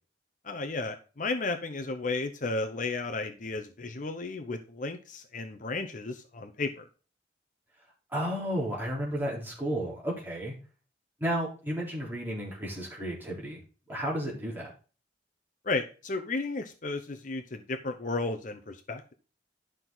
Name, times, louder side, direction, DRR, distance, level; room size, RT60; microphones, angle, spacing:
voice 1, 0.4-6.9 15.6-19.1, left 3 dB, 45° left, 6 dB, 0.8 m, -33 dB
voice 2, 8.1-10.5 11.2-13.6 13.9-14.7, equal, 10° right, -5 dB, 3.8 m, -32 dB
11.5 x 6.2 x 4.0 m, 0.36 s
head